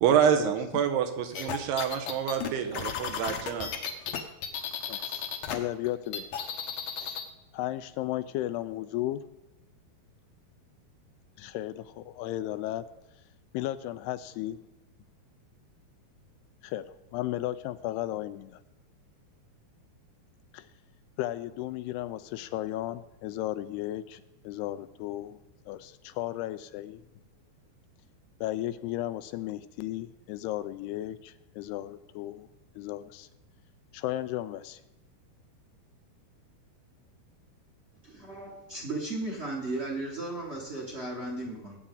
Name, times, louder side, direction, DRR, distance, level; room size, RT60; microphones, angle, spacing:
voice 1, 0.0-3.7, right 8 dB, 85° right, 6 dB, 3.1 m, -27 dB
sound 1, 1.3-5.6 5.8-7.3, left 8 dB, 70° left, 1.6 m, -34 dB
voice 2, 4.9-6.5 7.0-7.2 7.5-9.2 11.4-12.9 13.5-14.7 16.6-18.6 20.5-20.7 21.2-25.4 25.7-27.0 28.4-32.5 32.8-33.3 33.9-34.8, left 14 dB, 90° left, 12 dB, 2.7 m, -35 dB
voice 3, 38.0-41.8, right 2 dB, 40° right, -2 dB, 0.8 m, -35 dB
20.0 x 8.4 x 3.9 m, 0.89 s
omnidirectional pair, 4.6 m